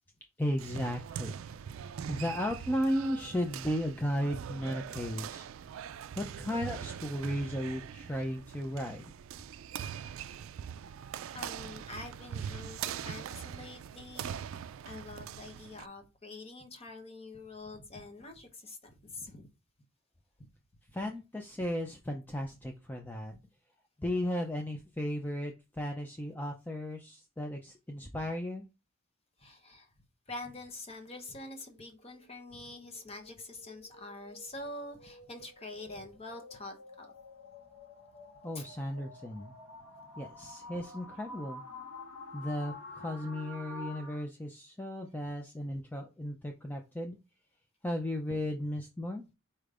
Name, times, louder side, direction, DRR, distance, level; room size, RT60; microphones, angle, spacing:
voice 1, 0.4-1.5 1.9-5.5 6.2-9.1 20.9-23.3 24.0-28.6 38.4-39.5 40.2-41.6 42.3-47.2 47.8-49.2, equal, 10° left, 0.4 m, -35 dB
sound 1, 0.6-15.9, right 8 dB, 70° right, 0.3 m, -42 dB
voice 2, 11.3-19.5 29.4-29.9 30.3-37.1 38.5-38.7 40.4-40.5, left 2 dB, 30° left, 0.8 m, -46 dB
sound 2, 31.0-44.2, left 2 dB, 90° left, 1.3 m, -50 dB
5.0 x 4.3 x 2.5 m
head